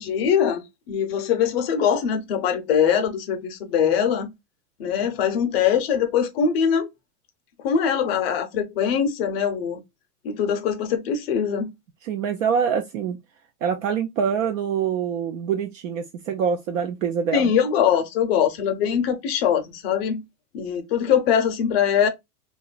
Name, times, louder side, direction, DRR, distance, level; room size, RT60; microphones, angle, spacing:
voice 1, 0.0-4.3 4.8-6.9 7.6-9.8 10.2-11.7 17.3-20.2 20.5-22.1, left 8 dB, 40° left, 0.5 m, -22 dB
voice 2, 12.0-13.2 13.6-17.4, right 7 dB, 55° right, 0.5 m, -25 dB
2.9 x 2.3 x 2.3 m
supercardioid pair, 150°, 46 cm